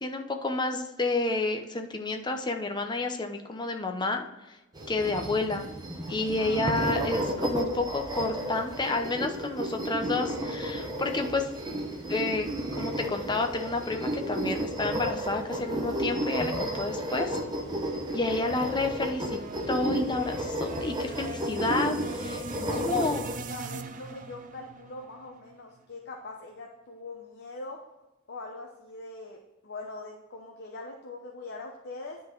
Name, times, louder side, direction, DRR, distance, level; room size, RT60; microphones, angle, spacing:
voice 1, 0.0-4.6 4.9-5.7 6.1-11.5 12.1-17.4 18.1-19.4 19.7-23.2, left 2 dB, 20° left, 4 dB, 0.8 m, -30 dB
sound 1, 4.7-23.4, equal, 20° right, 0.9 m, -33 dB
voice 2, 6.4-7.1 22.5-23.1 23.5-27.8 28.3-32.2, left 2 dB, 55° left, 1 dB, 0.8 m, -42 dB
sound 2, 17.5-25.8, right 4 dB, 40° right, 0.5 m, -42 dB
10.0 x 3.9 x 4.6 m, 1.0 s
head